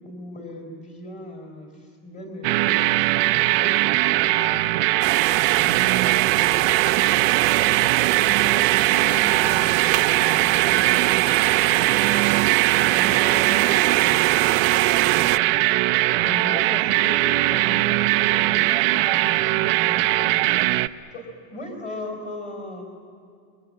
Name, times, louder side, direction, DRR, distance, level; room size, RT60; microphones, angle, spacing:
voice 1, 0.0-1.7 2.0-4.8 5.3-7.3 8.2-10.4 10.7-12.0 12.8-15.3 21.1-22.8, left 1 dB, 15° left, 3 dB, 4.2 m, -38 dB
sound 1, 2.4-20.9, right 18 dB, 45° right, 0.6 m, -20 dB
sound 2, 5.0-15.4, right 16 dB, 65° right, 0.9 m, -25 dB
voice 2, 15.9-20.4, left 3 dB, 55° left, 8 dB, 4.6 m, -38 dB
29.0 x 23.5 x 7.7 m, 2.3 s
supercardioid pair, 175°, 43 cm